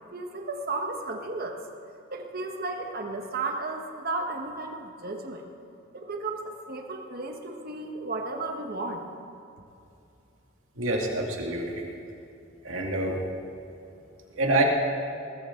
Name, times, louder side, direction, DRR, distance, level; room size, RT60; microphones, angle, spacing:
voice 1, 0.1-1.6 2.1-5.5 5.9-9.0, right 3 dB, 50° right, 3 dB, 1.4 m, -34 dB
voice 2, 10.8-11.8 12.6-13.2 14.4-14.7, right 2 dB, 90° right, 0 dB, 2.3 m, -26 dB
20.5 x 13.5 x 3.8 m, 2.7 s
head